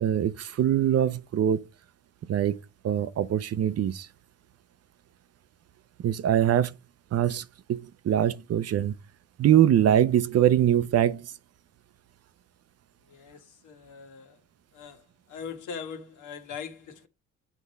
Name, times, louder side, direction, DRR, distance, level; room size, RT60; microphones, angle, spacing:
voice 1, 0.0-1.6 2.3-2.6 2.8-4.1 6.0-6.7 7.1-7.4 7.7-8.9 9.4-11.2, right 10 dB, 55° right, 0.6 m, -23 dB
voice 2, 13.1-14.4 14.7-15.0 15.3-17.1, left 6 dB, 80° left, 1.5 m, -41 dB
8.2 x 3.6 x 5.4 m
cardioid pair, 90°, 30 cm